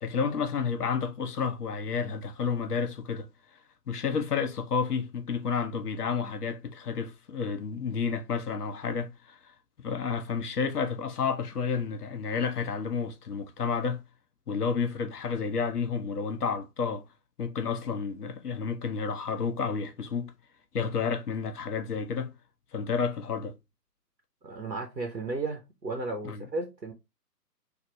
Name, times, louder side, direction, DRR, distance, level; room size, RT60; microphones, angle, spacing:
voice 1, 0.0-3.3 3.9-9.4 9.8-14.0 14.5-17.0 17.4-20.3 20.7-22.3 22.7-23.5 26.2-26.5, left 5 dB, 65° left, 0.8 m, -30 dB
voice 2, 24.4-26.9, right 3 dB, 90° right, 1.1 m, -34 dB
4.0 x 2.9 x 3.0 m
figure-of-eight pair, 135°, 49 cm